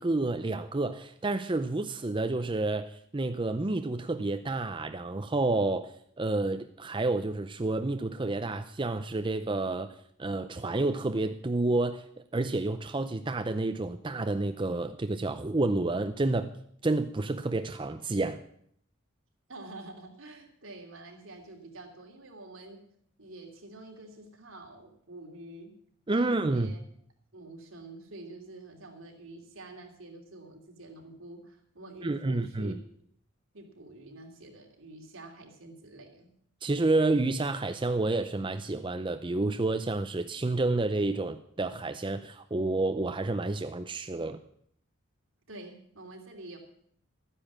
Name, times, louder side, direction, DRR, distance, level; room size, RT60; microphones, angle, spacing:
voice 1, 0.0-9.9 10.2-12.0 12.3-16.5 16.8-18.4 26.1-26.7 32.0-32.8 36.6-44.4, right 2 dB, 25° right, 8 dB, 0.5 m, -29 dB
voice 2, 19.5-22.8 23.2-25.8 26.2-26.8 27.3-32.8 33.5-36.3 45.5-46.6, right 2 dB, 80° right, 1 dB, 3.0 m, -47 dB
12.5 x 10.0 x 7.3 m, 0.66 s
head